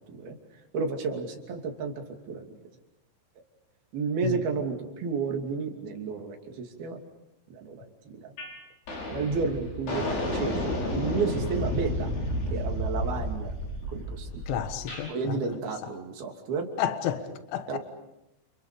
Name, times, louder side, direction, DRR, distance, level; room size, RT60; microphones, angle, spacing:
voice 1, 0.7-2.5 3.9-7.0 7.5-8.3 9.1-12.1 12.5-13.5 13.9-14.3 15.1-16.7 17.7-17.8, right 5 dB, 55° right, 4.4 m, -32 dB
sound 1, 8.4-8.6 8.9-15.1, left 1 dB, 55° left, 8.0 m, -31 dB
voice 2, 14.5-15.5 16.8-17.2 17.5-17.8, left 10 dB, 75° left, 3.7 m, -31 dB
29.5 x 29.5 x 5.2 m
omnidirectional pair, 5.6 m